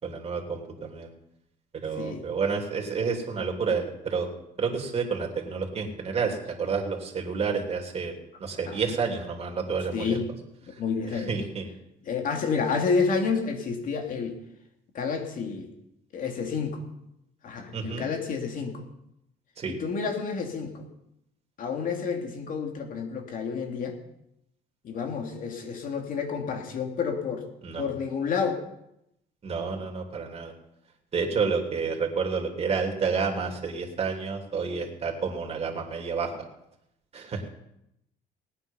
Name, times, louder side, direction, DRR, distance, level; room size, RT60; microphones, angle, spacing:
voice 1, 0.0-1.1 1.7-4.3 4.6-10.2 10.7-10.8 11.1-11.7 17.7-18.1 19.6-19.8 27.6-27.9 29.4-30.5 31.1-36.3 37.1-37.5, right 5 dB, 35° right, 2 dB, 3.2 m, -30 dB
voice 2, 1.9-2.2 8.7-8.8 9.9-10.2 10.8-11.3 12.1-14.4 14.9-15.7 16.1-16.8 17.4-18.8 19.8-20.9 21.6-24.0 24.8-27.5 27.8-28.6, left 5 dB, 55° left, 3 dB, 2.8 m, -29 dB
18.5 x 9.4 x 5.6 m, 0.82 s
cardioid pair, 110°, 17 cm